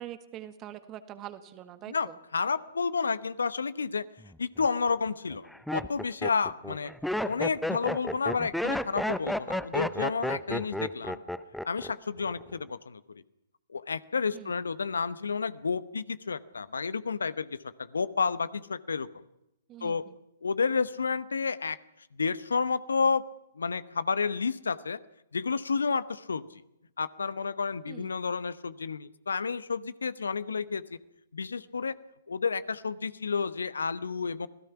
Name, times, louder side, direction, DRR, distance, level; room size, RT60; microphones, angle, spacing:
voice 1, 0.0-2.1 14.3-14.6 19.7-20.1 27.9-28.1, right 12 dB, 30° right, 11 dB, 1.7 m, -44 dB
voice 2, 1.9-4.0 4.4-6.9 7.2-11.2 11.6-13.2 13.7-19.2 19.8-20.0 20.4-21.8 22.2-23.2 23.6-25.0 25.3-26.6 27.0-31.0 31.3-32.0 32.3-34.5, left 5 dB, 75° left, 16 dB, 0.9 m, -31 dB
Laughter, 4.2-4.7 5.3-11.9 12.2-12.7, left 1 dB, ahead, 0.8 m, -32 dB
26.5 x 17.0 x 5.9 m, 0.87 s
figure-of-eight pair, 120°, 0 cm